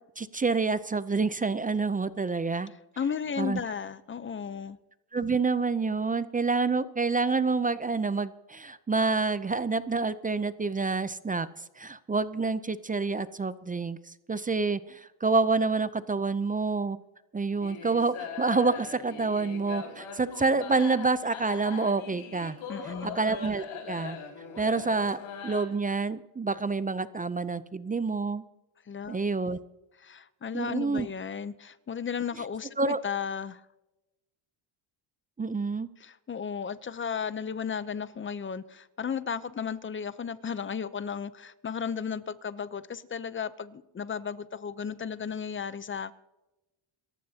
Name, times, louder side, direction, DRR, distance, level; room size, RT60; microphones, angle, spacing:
voice 1, 0.2-2.7 3.4-3.6 5.1-11.5 11.8-14.0 14.3-17.0 17.3-22.6 22.8-24.2 24.6-28.4 29.1-29.6 30.5-31.1 32.8-33.0 35.4-35.9, right 4 dB, 20° right, 14 dB, 0.5 m, -28 dB
voice 2, 3.0-4.8 22.7-23.2 28.9-29.2 30.0-33.6 36.0-46.1, left 7 dB, 25° left, 15 dB, 0.6 m, -34 dB
sound 1, 17.6-25.7, left 6 dB, 75° left, 4.1 m, -41 dB
27.5 x 14.5 x 2.8 m, 1.0 s
cardioid pair, 110°, 49 cm